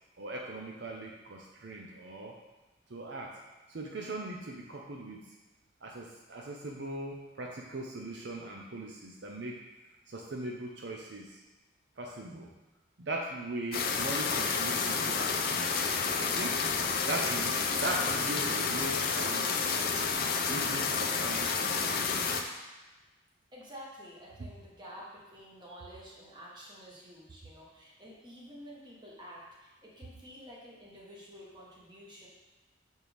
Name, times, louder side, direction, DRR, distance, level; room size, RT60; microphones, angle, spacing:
voice 1, 0.2-2.4 2.9-3.4 3.7-5.3 5.8-9.7 10.1-11.4 12.0-12.5 13.0-15.7 16.1-16.6 17.0-19.9 20.5-22.3, right 2 dB, 65° right, 0 dB, 0.6 m, -39 dB
sound 1, 13.7-22.4, left 5 dB, 50° left, 0.5 m, -30 dB
voice 2, 23.5-32.3, equal, 25° right, -5 dB, 1.3 m, -50 dB
6.2 x 4.4 x 3.4 m, 1.1 s
head